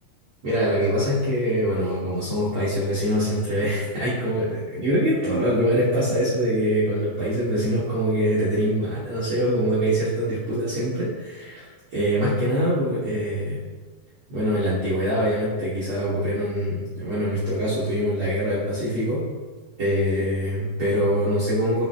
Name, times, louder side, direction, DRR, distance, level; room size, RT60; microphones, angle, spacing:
voice 1, 0.4-11.6 11.9-13.6 14.3-19.3 19.8-21.9, equal, 90° right, -9 dB, 1.1 m, -24 dB
5.6 x 5.2 x 3.2 m, 1.4 s
omnidirectional pair, 4.2 m